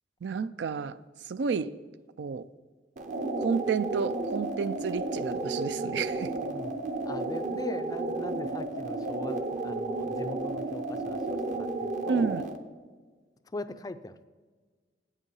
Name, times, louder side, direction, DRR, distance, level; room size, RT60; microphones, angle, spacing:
voice 1, 0.2-1.0 1.3-1.7 2.2-2.5 3.4-6.3 12.1-12.4, right 5 dB, 75° right, 15 dB, 0.4 m, -31 dB
sound 1, 3.0-12.6, right 2 dB, 45° right, 0.8 m, -32 dB
voice 2, 6.5-12.3 13.5-14.2, left 2 dB, 20° left, 11 dB, 0.4 m, -40 dB
9.1 x 8.3 x 5.4 m, 1.4 s
head